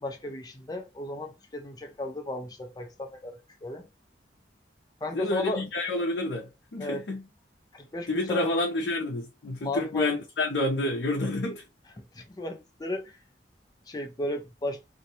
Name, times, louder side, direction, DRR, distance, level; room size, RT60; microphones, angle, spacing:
voice 1, 0.0-3.9 5.0-5.6 6.8-7.0 7.7-8.5 9.6-10.1 12.0-13.2 13.9-14.8, left 1 dB, 20° left, 0.4 m, -35 dB
voice 2, 5.1-7.2 8.1-11.6, left 2 dB, 70° left, 0.5 m, -29 dB
2.6 x 2.2 x 2.7 m
head